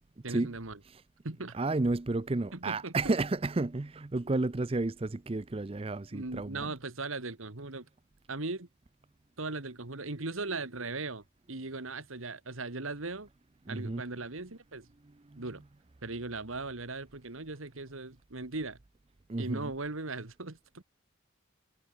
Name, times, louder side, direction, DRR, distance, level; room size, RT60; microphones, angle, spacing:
voice 1, 0.2-0.8 1.2-1.6 2.5-3.1 6.1-7.9 8.3-8.7 9.4-13.3 13.7-14.9 15.4-15.6 16.0-18.8 19.4-20.8, right 3 dB, 80° right, 2.0 m, -38 dB
voice 2, 1.5-6.7 13.7-14.0 15.3-15.4 19.3-19.7, right 2 dB, 25° right, 0.5 m, -31 dB
head